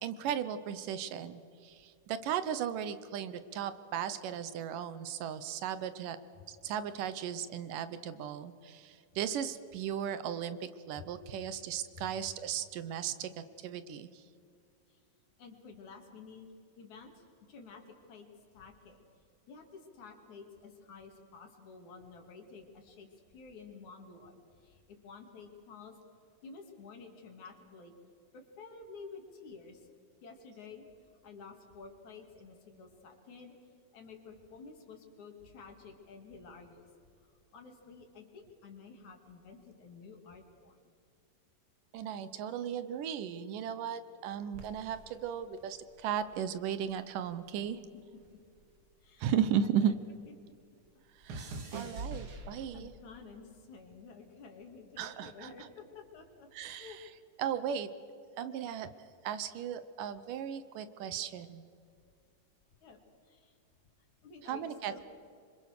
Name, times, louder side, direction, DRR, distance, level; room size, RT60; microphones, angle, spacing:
voice 1, 0.0-6.2 6.5-14.2 41.9-47.8 49.2-49.9 51.2-52.9 55.0-55.7 56.5-57.1 57.4-57.9 58.4-58.9 59.2-61.6 64.4-65.0, right 9 dB, 75° right, 12 dB, 2.5 m, -36 dB
voice 2, 15.4-16.5 16.8-18.3 18.5-19.1 19.5-26.0 26.4-27.9 28.3-29.9 30.2-30.9 31.2-33.6 33.9-36.9 37.2-40.9 47.9-48.4 49.0-49.3 49.6-49.9 51.6-52.1 52.5-57.0 62.8-63.6 64.0-65.0, left 4 dB, 60° left, 4 dB, 3.8 m, -52 dB
sound 1, 44.5-47.0 47.3-50.0 50.2-53.0 53.8-54.2, right 3 dB, 45° right, 2.5 m, -46 dB
26.5 x 25.0 x 6.6 m, 2.4 s
omnidirectional pair, 3.9 m